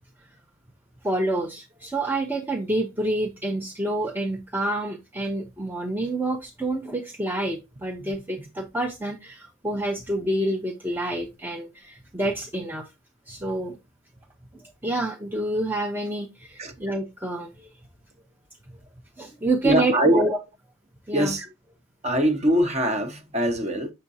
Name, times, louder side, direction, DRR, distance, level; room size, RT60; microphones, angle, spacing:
voice 1, 1.0-12.9 13.3-13.8 14.5-17.7 19.2-20.4 21.1-21.4, right 1 dB, 10° right, 0.6 m, -28 dB
voice 2, 19.6-20.2 21.1-21.4 22.0-23.9, equal, 35° right, 1.0 m, -22 dB
6.5 x 5.8 x 2.7 m
head